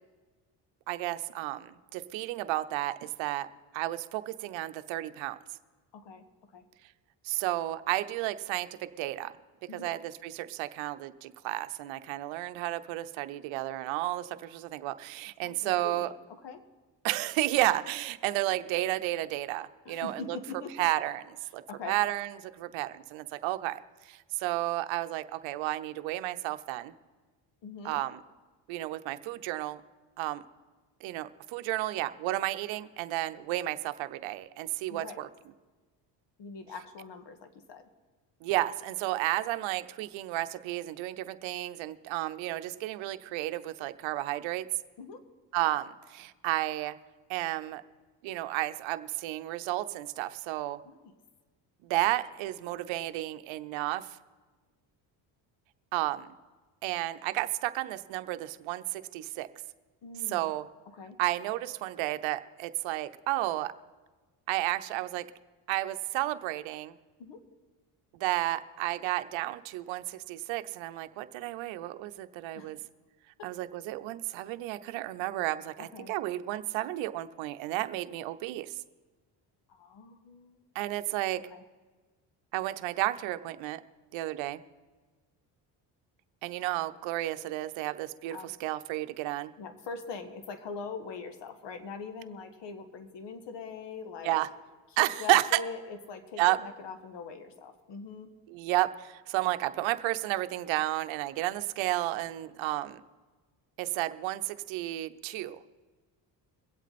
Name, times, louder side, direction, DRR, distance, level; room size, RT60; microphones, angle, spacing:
voice 1, 0.9-3.5 3.7-5.4 7.2-9.4 9.7-16.1 17.0-20.4 20.8-21.2 21.5-23.8 24.0-26.9 27.8-28.2 28.7-29.8 30.2-30.4 31.0-35.3 38.4-44.7 45.5-47.0 47.3-47.8 48.2-50.8 51.8-54.1 55.9-56.3 56.8-59.5 60.3-60.7 61.2-63.7 64.5-65.3 65.7-66.9 68.2-72.8 73.4-78.8 80.7-81.4 82.5-83.8 84.1-84.6 86.4-89.5 94.2-94.5 95.0-95.4 96.4-96.6 98.5-103.0 103.8-105.6, right 16 dB, 80° right, 11 dB, 0.8 m, -32 dB
voice 2, 5.9-6.2 6.5-6.6 9.7-9.9 15.4-16.6 19.9-20.8 21.7-21.9 27.6-28.0 34.9-35.3 36.4-37.9 45.0-45.2 50.8-51.1 60.0-60.5 60.9-61.2 67.2-67.4 72.5-72.7 73.4-73.5 75.8-76.1 79.7-80.6 81.5-81.6 88.3-88.5 89.6-94.4 94.9-98.3, left 5 dB, 65° left, 8 dB, 1.8 m, -42 dB
23.0 x 8.2 x 4.2 m, 1.3 s
supercardioid pair, 80°, 46 cm